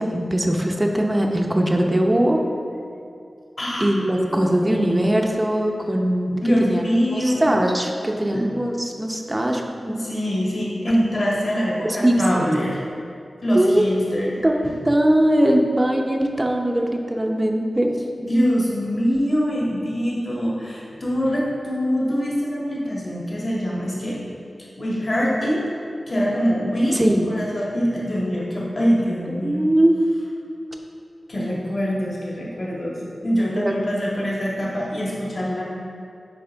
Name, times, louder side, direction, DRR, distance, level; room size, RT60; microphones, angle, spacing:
voice 1, 0.0-2.4 3.8-6.3 6.6-6.8 7.2-10.0 11.8-12.2 13.5-13.9 14.4-14.6 14.8-17.9 26.9-27.3 28.3-28.4 29.0-30.0 33.6-33.7, right 1 dB, 20° right, 2 dB, 0.7 m, -20 dB
voice 2, 4.3-5.2 6.3-7.5 8.3-8.4 9.9-12.8 13.4-14.3 18.2-24.2 24.8-25.6 26.1-29.7 31.3-35.6, equal, 45° left, -6 dB, 1.7 m, -24 dB
10.5 x 4.7 x 3.5 m, 2.4 s
wide cardioid pair, 100°, 0 cm